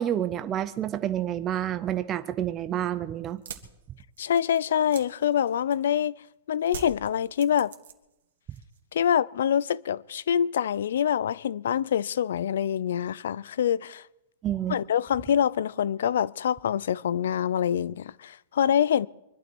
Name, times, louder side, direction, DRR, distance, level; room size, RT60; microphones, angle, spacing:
voice 1, 0.0-3.4 14.4-14.8, right 11 dB, 20° right, 0.5 m, -29 dB
sound 1, 3.3-6.0 6.7-8.2 8.5-9.1, right 7 dB, 75° right, 1.8 m, -43 dB
voice 2, 4.2-6.2 6.5-7.7 8.9-14.0 14.7-19.1, left 9 dB, 75° left, 0.5 m, -25 dB
24.0 x 12.0 x 4.6 m
supercardioid pair, 170°, 0 cm